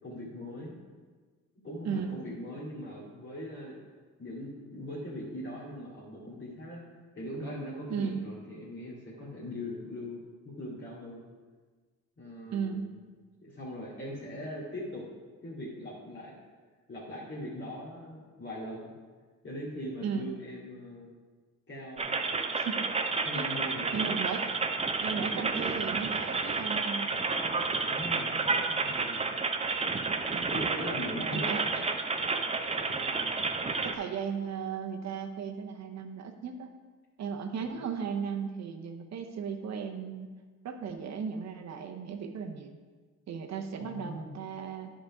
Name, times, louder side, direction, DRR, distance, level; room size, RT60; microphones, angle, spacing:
voice 1, 0.0-0.8 1.6-3.8 4.2-6.8 7.2-11.2 12.2-13.0 13.4-15.1 15.4-16.4 16.9-18.9 19.4-21.1 21.7-22.2 23.2-24.6 27.9-28.4 28.7-29.3 30.5-31.8 32.7-33.4 43.8-44.4, left 1 dB, 40° left, -8 dB, 2.4 m, -41 dB
voice 2, 7.9-8.3 12.5-12.9 20.0-20.3 22.5-22.9 23.3-23.4 23.9-24.5 25.0-27.1 30.3-30.5 31.3-31.6 33.8-36.7 37.2-40.3 40.6-42.8 43.3-44.9, right 6 dB, 60° right, 5 dB, 0.9 m, -36 dB
sound 1, 22.0-33.9, right 4 dB, 20° right, 0.6 m, -31 dB
10.0 x 5.1 x 4.8 m, 1.4 s
cardioid pair, 90°, 30 cm